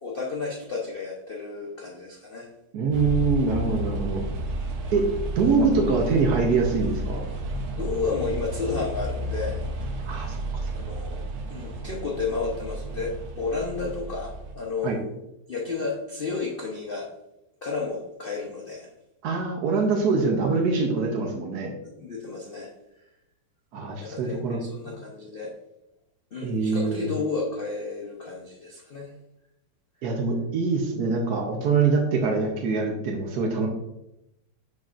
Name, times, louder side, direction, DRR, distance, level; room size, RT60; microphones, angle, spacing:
voice 1, 0.0-2.5 4.6-4.9 7.7-9.6 10.7-11.2 11.5-15.0 15.5-17.1 17.6-18.9 21.2-21.3 21.8-22.7 24.0-25.5 26.3-29.1, left 4 dB, 60° left, -3 dB, 0.5 m, -32 dB
voice 2, 2.7-4.2 4.9-5.0 5.4-7.2 10.1-10.7 14.8-15.0 19.2-21.7 23.7-24.6 24.8-25.0 26.4-27.1 30.0-33.7, right 4 dB, 60° right, 0 dB, 1.1 m, -24 dB
sound 1, 2.9-14.5, right 1 dB, 80° right, 1.6 m, -32 dB
10.5 x 4.0 x 2.5 m, 0.88 s
omnidirectional pair, 2.2 m